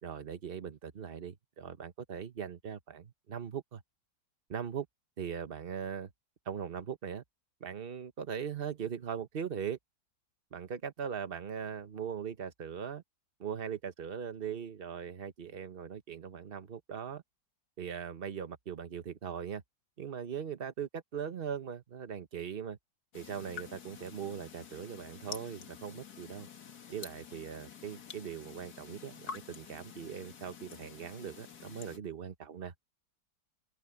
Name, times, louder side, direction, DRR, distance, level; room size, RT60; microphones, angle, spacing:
voice 1, 0.0-3.8 4.5-4.9 5.2-6.1 6.5-7.2 7.6-9.8 10.5-13.0 13.4-17.2 17.8-19.6 20.0-22.8 23.1-26.5 26.9-32.7, right 7 dB, 40° right, 1.1 m, -40 dB
sound 1, 23.1-32.0, left 7 dB, 60° left, 2.0 m, -49 dB
open air
omnidirectional pair, 2.0 m